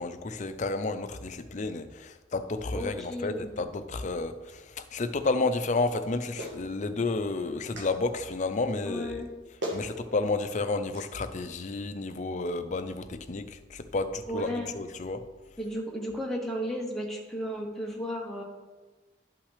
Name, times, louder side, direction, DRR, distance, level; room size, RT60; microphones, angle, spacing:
voice 1, 0.0-9.2 9.7-15.2, left 3 dB, 40° left, 9 dB, 0.5 m, -31 dB
voice 2, 2.7-3.5 8.8-9.3 14.3-14.7 15.6-18.4, equal, ahead, -2 dB, 1.0 m, -34 dB
Clapping, 6.4-6.6 7.8-7.9 9.2-9.3 9.6-9.9 10.9-11.1, equal, 75° right, 1.4 m, -35 dB
11.5 x 5.7 x 3.3 m, 1.2 s
head